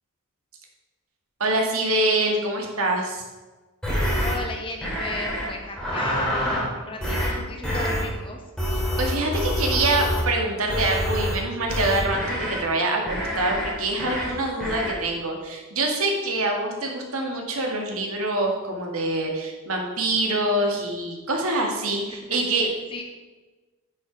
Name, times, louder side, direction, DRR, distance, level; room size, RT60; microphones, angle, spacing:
voice 1, 1.4-3.2 9.0-22.7, right 2 dB, 75° right, 1 dB, 2.0 m, -25 dB
sound 1, 3.8-4.3 4.8-5.5 5.8-6.7 7.0-7.3 7.6-8.0 8.6-10.3 10.7-11.3 11.7-12.6 13.1-13.7 14.0-14.3 14.6-14.9, equal, 5° left, 2.8 m, -26 dB
voice 2, 4.2-8.4 22.1-23.0, left 2 dB, 25° left, 2 dB, 1.4 m, -35 dB
10.0 x 6.3 x 5.2 m, 1.2 s
head